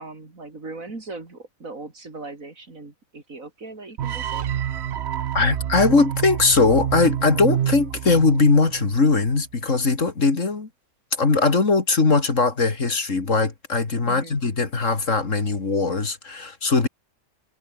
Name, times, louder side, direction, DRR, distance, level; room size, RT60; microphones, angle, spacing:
voice 1, 0.0-4.4 14.0-14.4, right 3 dB, 70° right, 4.3 m, -39 dB
sound 1, 4.0-9.1, right 10 dB, 55° right, 0.9 m, -27 dB
voice 2, 5.3-10.7 11.1-16.9, left 4 dB, 60° left, 3.0 m, -20 dB
omnidirectional pair, 1.4 m